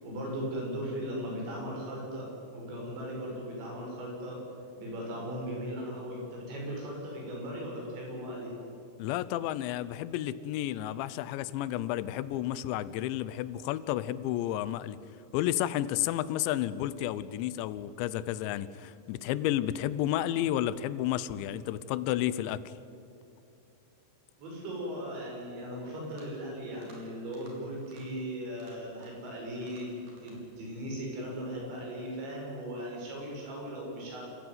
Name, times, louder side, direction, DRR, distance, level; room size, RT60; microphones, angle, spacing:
voice 1, 0.0-4.4 4.8-8.5 24.4-34.2, equal, 80° right, -2 dB, 8.1 m, -38 dB
voice 2, 9.0-15.0 15.3-22.7, left 13 dB, 90° left, 16 dB, 3.1 m, -31 dB
sound 1, 26.0-26.4 26.7-27.0 27.3-27.5 27.8-28.0 28.5-29.3 29.6-30.4, right 2 dB, 50° right, 5.6 m, -58 dB
26.5 x 15.5 x 9.5 m, 2.5 s
omnidirectional pair, 5.1 m